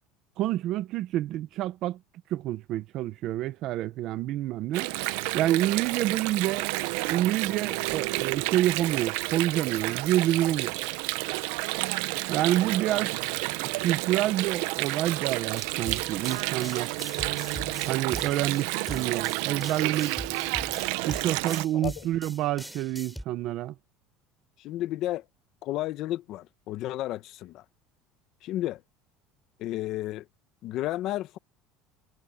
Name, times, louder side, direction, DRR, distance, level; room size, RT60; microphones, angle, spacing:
voice 1, 0.4-2.0 2.3-4.9 5.3-6.7 7.1-10.8 12.3-13.1 13.6-16.9 17.9-20.2 21.0-23.7, right 14 dB, 50° right, 1.0 m, -28 dB
Water, 4.7-21.7, right 21 dB, 80° right, 0.8 m, -30 dB
sound 1, 15.6-23.2, equal, ahead, 4.8 m, -42 dB
voice 2, 21.7-22.1 24.6-25.2 25.6-27.6 28.4-28.8 29.6-30.2 30.6-31.4, left 15 dB, 55° left, 0.9 m, -32 dB
cardioid pair, 150°, 0 cm